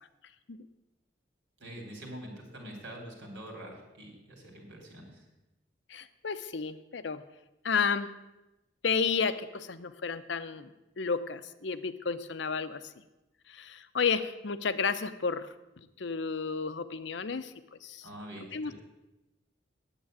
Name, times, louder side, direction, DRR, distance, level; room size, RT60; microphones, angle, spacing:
voice 1, 1.6-5.2 18.0-18.8, right 1 dB, 70° right, 0 dB, 3.6 m, -45 dB
voice 2, 5.9-7.2 7.6-8.1 8.8-12.8 13.5-15.5 16.0-17.5 17.8-18.1 18.3-18.8, left 5 dB, 75° left, 12 dB, 0.7 m, -32 dB
9.2 x 8.2 x 8.9 m, 0.98 s
head